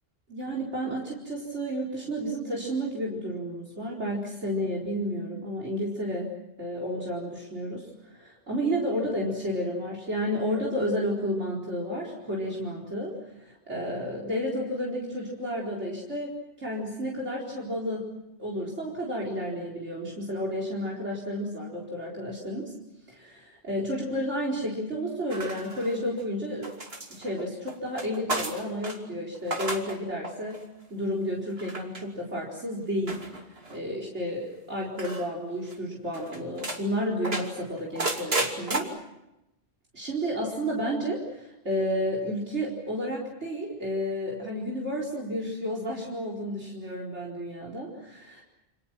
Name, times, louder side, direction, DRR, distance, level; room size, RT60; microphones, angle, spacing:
voice 1, 0.3-6.3 6.6-18.1 18.4-22.7 23.1-26.7 27.1-30.6 30.9-33.4 33.7-38.9 39.9-48.4, equal, 80° right, -2 dB, 4.8 m, -31 dB
sound 1, 25.3-26.2 26.6-29.0 29.4-30.0 30.2-30.6 31.6-32.0 33.1-33.8 35.0-35.3 35.7-35.8 36.1-36.8 37.2-38.8, right 2 dB, 60° right, 3.0 m, -33 dB
29.0 x 26.5 x 6.1 m, 0.89 s
omnidirectional pair, 1.2 m